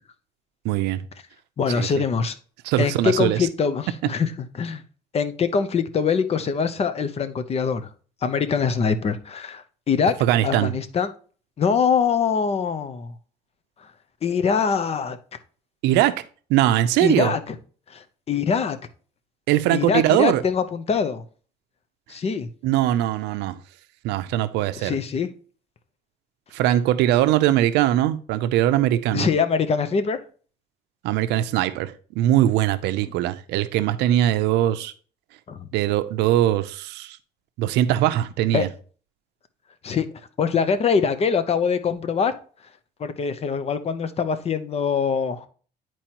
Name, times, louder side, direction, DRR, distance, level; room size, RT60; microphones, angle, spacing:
voice 1, 0.6-1.0 1.7-2.0 2.7-3.4 10.2-10.7 15.8-16.1 16.5-17.3 19.5-20.4 22.6-23.6 24.0-25.0 26.5-29.3 31.0-34.9 35.7-37.2 37.6-38.7, right 13 dB, 90° right, 0.6 m, -21 dB
voice 2, 1.6-2.3 2.8-4.8 5.1-7.9 8.2-10.1 10.4-11.1 11.6-13.1 14.2-15.2 17.0-17.6 17.9-18.8 19.7-21.2 22.1-22.5 24.8-25.3 29.1-30.2 35.5-35.7 38.5-38.6 39.8-40.1 40.4-42.3 43.0-45.5, left 6 dB, 35° left, 0.7 m, -23 dB
10.5 x 4.5 x 2.9 m
cardioid pair, 110°, 17 cm